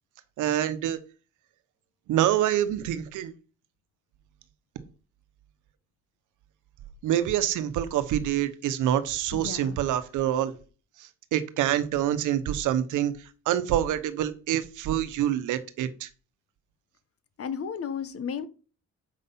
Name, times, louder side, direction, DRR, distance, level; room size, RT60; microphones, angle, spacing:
voice 1, 0.4-1.0 2.1-3.3 7.0-10.5 11.3-13.1 13.5-16.1, right 11 dB, 85° right, 1.0 m, -26 dB
voice 2, 9.3-9.8 17.4-18.5, left 7 dB, 50° left, 1.1 m, -33 dB
7.3 x 5.6 x 5.5 m
cardioid pair, 90°, 30 cm